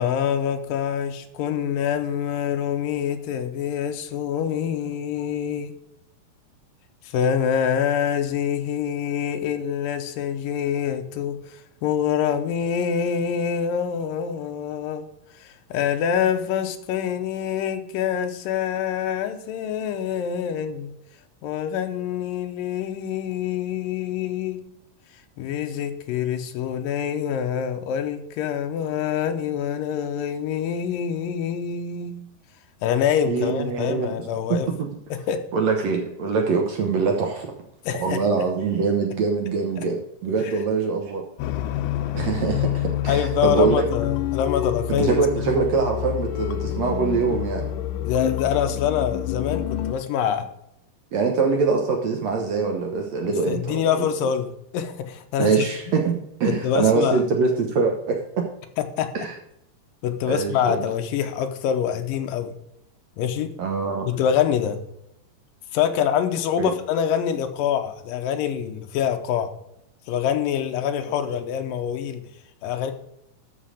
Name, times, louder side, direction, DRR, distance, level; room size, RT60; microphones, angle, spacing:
voice 1, 0.0-5.7 7.0-11.4 11.8-15.1 15.4-20.9 21.4-24.6 25.4-32.2 32.8-34.7 35.1-35.4 37.9-38.2 39.8-39.9 40.4-40.5 43.1-45.2 48.1-50.5 53.2-55.7 56.4-57.2 58.8-59.1 60.0-62.5 63.2-63.5 64.1-64.8 65.7-69.5 70.1-72.2 72.6-72.9, left 8 dB, 75° left, 6 dB, 2.3 m, -25 dB
voice 2, 33.2-34.1 34.5-34.6 35.5-37.5 38.0-41.2 42.1-43.9 45.0-47.6 51.1-54.1 55.4-58.2 59.1-59.3 60.3-60.8 63.6-64.1 66.6-66.7, right 5 dB, 70° right, 2 dB, 1.6 m, -23 dB
sound 1, 41.4-49.9, left 12 dB, 90° left, 1.9 m, -27 dB
13.5 x 5.2 x 5.0 m, 0.80 s
omnidirectional pair, 4.4 m